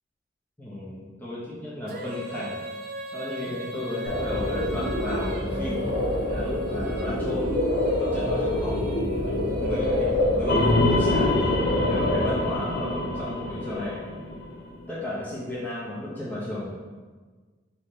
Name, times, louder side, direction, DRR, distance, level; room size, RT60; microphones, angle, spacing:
voice 1, 0.6-2.5 3.1-5.8 6.3-7.5 8.0-11.3 11.9-14.0 14.9-16.7, left 1 dB, 10° left, -8 dB, 0.8 m, -34 dB
Female singing, 1.9-11.0, equal, 50° right, 0.6 m, -37 dB
sound 1, 4.1-12.4, left 1 dB, 75° left, 1.3 m, -26 dB
sound 2, 10.5-14.9, left 2 dB, 55° left, 0.4 m, -26 dB
5.6 x 2.7 x 3.1 m, 1.4 s
head